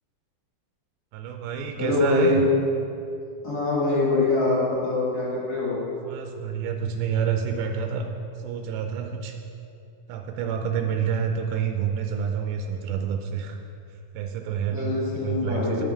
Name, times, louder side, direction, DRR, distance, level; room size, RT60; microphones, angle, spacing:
voice 1, 1.1-2.4 6.1-8.1 8.4-9.3 10.1-13.6 14.1-15.8, right 7 dB, 90° right, 4 dB, 2.4 m, -28 dB
voice 2, 1.8-2.4 3.4-5.7 14.7-15.8, left 2 dB, 40° left, -8 dB, 1.4 m, -24 dB
10.5 x 5.5 x 3.4 m, 2.6 s
omnidirectional pair, 4.3 m